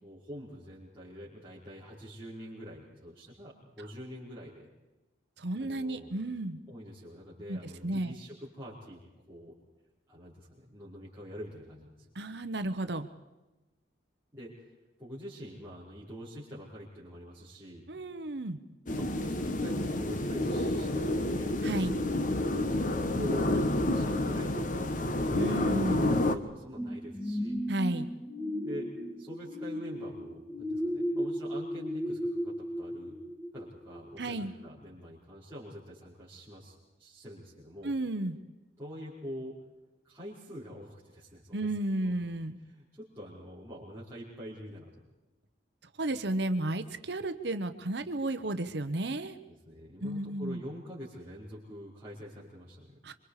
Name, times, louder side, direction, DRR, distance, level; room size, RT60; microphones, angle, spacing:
voice 1, 0.0-4.7 5.5-6.1 6.7-9.5 10.1-12.1 14.3-14.7 15.0-17.9 18.9-21.6 22.2-27.6 28.6-28.9 29.2-33.2 33.5-38.0 38.8-39.6 40.0-41.7 42.0-42.1 42.6-45.0 49.5-53.0, equal, 15° right, -10 dB, 5.2 m, -45 dB
voice 2, 5.4-6.6 7.5-7.6 7.8-8.2 12.1-13.1 17.9-18.6 21.6-22.0 25.3-26.2 27.7-28.1 34.2-34.5 37.8-38.3 41.5-42.6 46.0-49.4 50.0-50.6 53.0-53.1, right 1 dB, 60° right, 9 dB, 1.1 m, -33 dB
sound 1, 18.9-26.4, left 1 dB, 45° left, 1.1 m, -29 dB
sound 2, 26.8-34.1 34.6-34.7, equal, 10° left, 1.7 m, -35 dB
27.0 x 25.0 x 4.9 m, 1.1 s
head